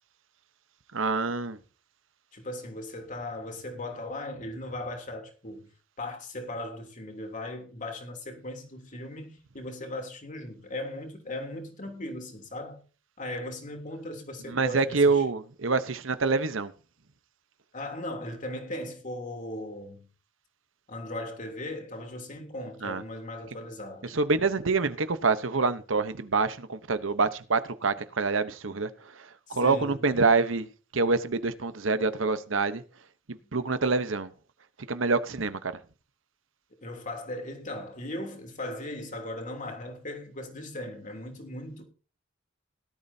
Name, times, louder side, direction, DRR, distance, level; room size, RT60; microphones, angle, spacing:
voice 1, 0.9-1.6 14.5-16.7 22.8-23.0 24.0-32.8 33.3-34.3 34.9-35.8, right 4 dB, 75° right, 1.0 m, -26 dB
voice 2, 2.3-5.7 6.0-12.8 13.2-15.2 17.7-20.1 20.9-24.2 29.5-30.0 36.8-41.8, left 1 dB, 40° left, 3.2 m, -38 dB
18.0 x 12.5 x 2.8 m
head